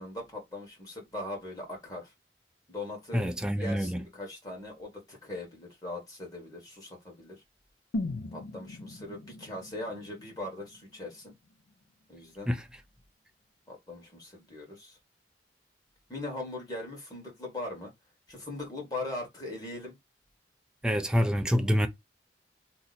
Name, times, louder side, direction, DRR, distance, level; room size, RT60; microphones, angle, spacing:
voice 1, 0.0-2.1 2.7-3.3 3.6-7.3 8.3-11.3 12.1-12.5 13.7-15.0 16.1-17.9 18.3-19.9, left 2 dB, 20° left, 1.3 m, -40 dB
voice 2, 3.1-4.0 12.5-12.6 20.8-21.9, equal, 5° right, 0.3 m, -26 dB
sound 1, 7.9-11.9 12.2-12.3, left 2 dB, 80° left, 0.5 m, -40 dB
2.8 x 2.1 x 3.9 m
head